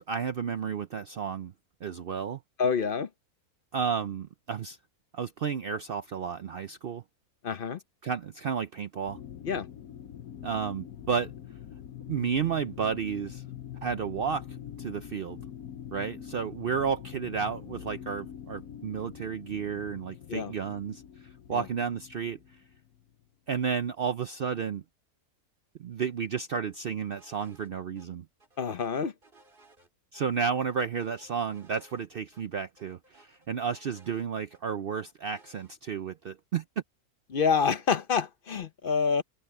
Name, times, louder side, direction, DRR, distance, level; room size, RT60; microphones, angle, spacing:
voice 1, 0.0-1.5 1.8-2.4 3.7-4.8 5.1-7.0 8.0-9.2 10.4-11.3 12.1-13.4 13.8-14.5 14.8-15.4 15.9-22.4 23.5-24.8 25.8-28.2 30.1-36.6, right 6 dB, 65° right, 0.5 m, -32 dB
voice 2, 2.6-3.1 7.4-7.8 9.4-9.7 20.3-20.5 21.5-21.6 28.6-29.1 37.3-39.2, left 6 dB, 50° left, 0.7 m, -27 dB
sound 1, 9.1-23.2, left 10 dB, 80° left, 1.3 m, -44 dB
sound 2, 27.1-27.7 27.9-28.1 28.4-30.2 30.6-32.1 32.3-32.4 32.8-34.6 34.9-35.7, right 2 dB, 35° right, 4.2 m, -60 dB
omnidirectional pair, 1.6 m